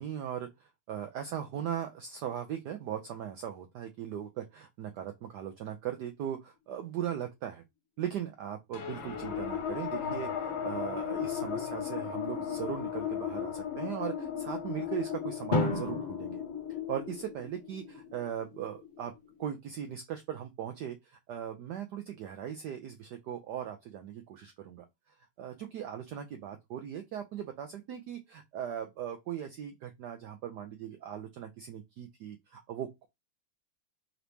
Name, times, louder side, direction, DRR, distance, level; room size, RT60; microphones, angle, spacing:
voice 1, 0.0-7.6 8.0-16.4 16.9-19.1 19.4-24.9 25.4-33.1, right 9 dB, 85° right, 0.9 m, -39 dB
sound 1, 8.7-19.4, left 8 dB, 70° left, 1.7 m, -36 dB
Drum, 15.5-17.6, left 1 dB, 90° left, 0.4 m, -33 dB
3.9 x 3.0 x 3.3 m
omnidirectional pair, 2.4 m